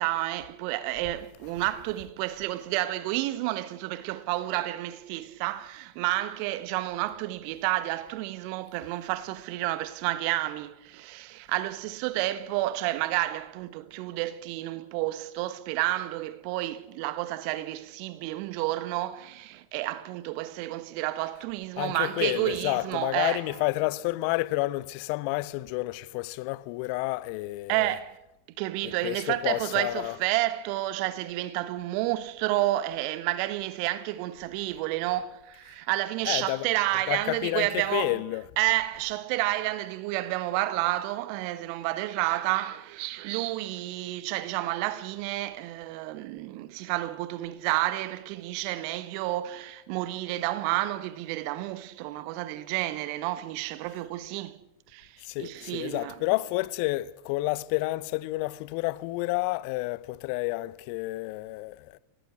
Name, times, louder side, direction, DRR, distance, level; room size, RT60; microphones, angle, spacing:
voice 1, 0.0-23.6 27.7-28.2 28.6-38.2 38.6-54.6 54.9-56.2, right 16 dB, 45° right, 1.6 m, -30 dB
voice 2, 21.8-27.9 28.8-30.2 36.3-36.7 37.1-38.4 55.2-61.9, left 20 dB, 45° left, 0.9 m, -30 dB
28.0 x 18.0 x 8.1 m
figure-of-eight pair, 90°, 0 cm